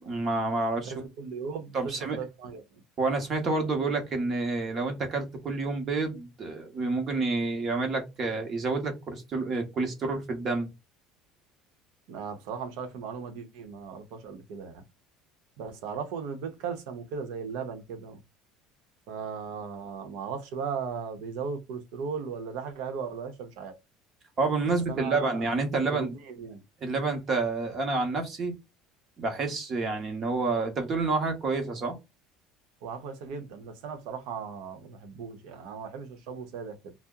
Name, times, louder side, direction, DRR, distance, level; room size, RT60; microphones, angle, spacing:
voice 1, 0.0-0.9 1.7-2.2 3.0-10.7 24.4-26.1 26.8-28.5 29.2-31.9, right 3 dB, 30° right, 0.8 m, -29 dB
voice 2, 0.8-2.6 12.1-14.8 15.6-18.2 19.1-23.7 24.9-25.4 25.9-26.6 32.8-36.9, right 6 dB, 65° right, 0.8 m, -37 dB
2.8 x 2.1 x 3.5 m
cardioid pair, 175°, 0 cm